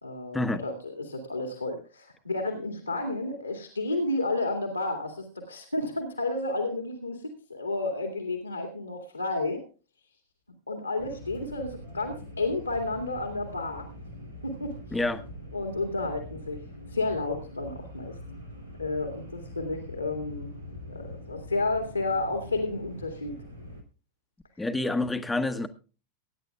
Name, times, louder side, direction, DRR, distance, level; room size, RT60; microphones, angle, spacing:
voice 1, 0.0-9.6 10.7-13.9 14.4-14.8 15.5-16.6 16.9-18.2 18.8-20.5 20.9-23.4, left 2 dB, 85° left, 2.3 m, -31 dB
sound 1, 11.0-23.8, equal, 90° right, 3.1 m, -43 dB
voice 2, 14.9-15.2 24.6-25.7, left 2 dB, 10° left, 1.2 m, -28 dB
23.5 x 10.0 x 2.4 m
figure-of-eight pair, 90°, 0 cm